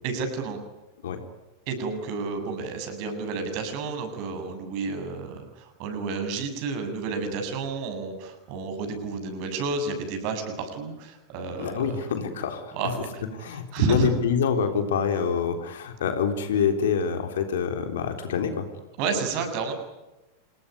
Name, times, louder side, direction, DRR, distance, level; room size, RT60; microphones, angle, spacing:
voice 1, 0.0-0.6 1.7-12.0 12.7-13.2 13.5-14.1 19.0-19.7, right 4 dB, 45° right, 6 dB, 7.5 m, -30 dB
voice 2, 11.6-12.7 13.4-18.7, left 7 dB, 60° left, 6 dB, 3.8 m, -26 dB
27.5 x 20.5 x 9.6 m, 1.0 s
figure-of-eight pair, 90°, 0 cm